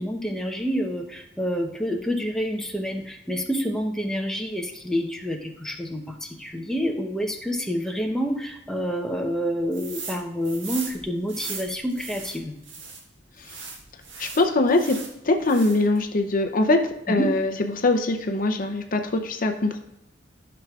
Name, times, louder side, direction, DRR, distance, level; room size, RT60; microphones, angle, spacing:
voice 1, 0.0-12.5 17.1-17.3, equal, 5° left, 2 dB, 0.8 m, -28 dB
sound 1, 9.7-10.2 10.4-13.0 13.4-15.1 15.4-16.0, right 5 dB, 80° right, 1.6 m, -38 dB
voice 2, 14.2-15.0 15.2-16.8 17.1-19.8, left 2 dB, 50° left, 6 dB, 0.6 m, -22 dB
12.0 x 6.0 x 2.4 m, 0.86 s
head